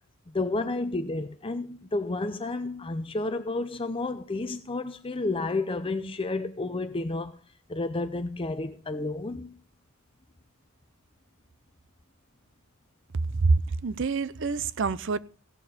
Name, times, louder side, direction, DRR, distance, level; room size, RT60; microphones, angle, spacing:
voice 1, 0.3-7.4 7.7-9.5, left 2 dB, 25° left, 0.6 m, -31 dB
voice 2, 13.8-15.2, right 4 dB, 55° right, 0.6 m, -25 dB
16.5 x 7.2 x 5.0 m
head